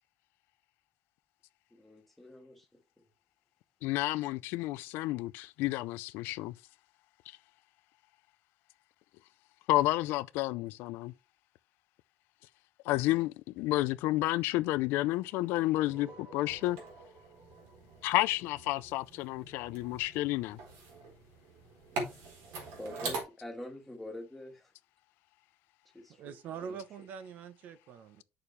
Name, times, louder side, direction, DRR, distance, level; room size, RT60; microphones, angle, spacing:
voice 1, 1.7-2.8 22.7-24.7 25.9-26.4 26.7-26.8, left 1 dB, 5° left, 1.6 m, -45 dB
voice 2, 3.8-6.5 9.7-11.1 12.9-16.8 18.0-20.6, left 17 dB, 80° left, 0.5 m, -30 dB
sound 1, 15.1-19.2, right 1 dB, 70° right, 3.3 m, -55 dB
sound 2, 16.5-23.2, right 3 dB, 85° right, 4.2 m, -43 dB
voice 3, 26.2-28.2, right 7 dB, 50° right, 0.8 m, -44 dB
8.8 x 6.7 x 3.3 m
cardioid pair, 170°, 4 cm